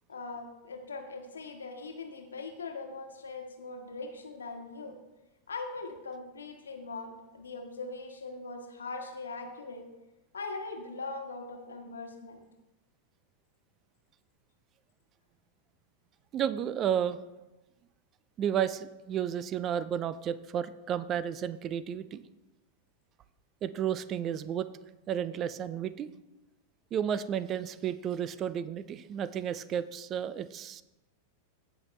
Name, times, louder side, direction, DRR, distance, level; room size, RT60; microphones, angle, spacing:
voice 1, 0.1-5.0 5.5-9.8 10.3-12.4, left 3 dB, 70° left, 4 dB, 1.4 m, -41 dB
voice 2, 16.3-17.2 18.4-22.2 23.6-24.7 25.1-26.1 26.9-30.8, right 9 dB, 30° right, 16 dB, 0.4 m, -32 dB
16.5 x 5.7 x 3.2 m, 1.0 s
figure-of-eight pair, 90°, 0 cm